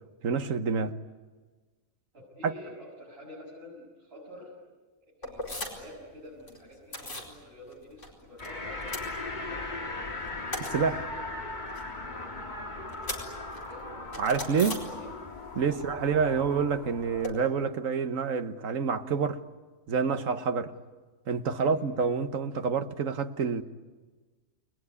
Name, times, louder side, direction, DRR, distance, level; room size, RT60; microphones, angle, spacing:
voice 1, 0.2-0.9 2.4-2.5 10.7-11.1 14.2-14.8 15.5-19.4 19.9-20.7 21.3-23.6, right 5 dB, 70° right, 1.5 m, -28 dB
voice 2, 2.1-4.5 5.2-10.3 13.0-13.1 13.7-15.1 15.7-15.8 21.5-21.9, left 1 dB, 45° right, 7.1 m, -48 dB
sound 1, 5.2-6.0 6.2-7.3 7.7-8.5 8.7-9.7 10.1-15.4 15.7-17.3, left 1 dB, 60° left, 5.0 m, -40 dB
sound 2, 8.4-17.3, left 2 dB, 35° left, 1.8 m, -38 dB
29.5 x 20.5 x 9.8 m
omnidirectional pair, 1.4 m